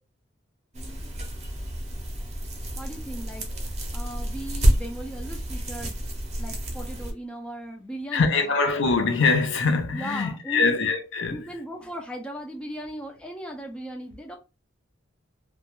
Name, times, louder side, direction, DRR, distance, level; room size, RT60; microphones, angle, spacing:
sound 1, 0.7-7.1, equal, 35° right, 0.6 m, -28 dB
voice 1, 2.8-6.0 6.4-8.5 9.9-10.8 11.3-14.4, right 1 dB, 5° left, 0.3 m, -37 dB
voice 2, 8.1-11.4, left 4 dB, 65° left, 0.5 m, -23 dB
2.3 x 2.2 x 2.9 m
head